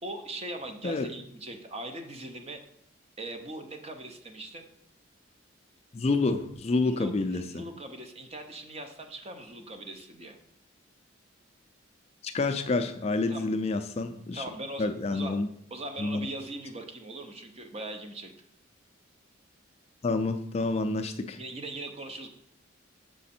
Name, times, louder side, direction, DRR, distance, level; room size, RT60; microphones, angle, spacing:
voice 1, 0.0-2.6 3.2-4.7 6.8-10.4 13.3-13.5 14.3-15.3 15.7-18.3 21.4-22.3, right 1 dB, 30° right, 5 dB, 0.7 m, -40 dB
voice 2, 5.9-7.6 12.2-14.4 14.8-15.5 16.0-16.3 20.0-21.4, left 3 dB, 30° left, 8 dB, 0.3 m, -28 dB
6.2 x 4.9 x 4.3 m, 0.72 s
head